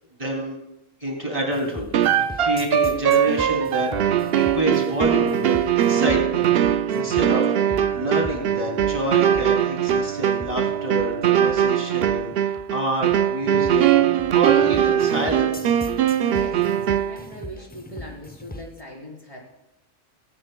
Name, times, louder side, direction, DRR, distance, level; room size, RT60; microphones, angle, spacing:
voice 1, 0.2-0.6 1.0-1.9 2.4-6.5 6.9-7.5 7.9-13.9 14.3-15.8, right 1 dB, 25° right, -1 dB, 2.9 m, -28 dB
sound 1, 1.5-18.8, left 1 dB, 10° left, 0.5 m, -40 dB
sound 2, 1.9-17.2, right 10 dB, 60° right, 0.7 m, -21 dB
voice 2, 16.3-19.4, equal, 25° left, -2 dB, 3.7 m, -40 dB
19.0 x 16.5 x 2.2 m, 0.87 s
omnidirectional pair, 1.3 m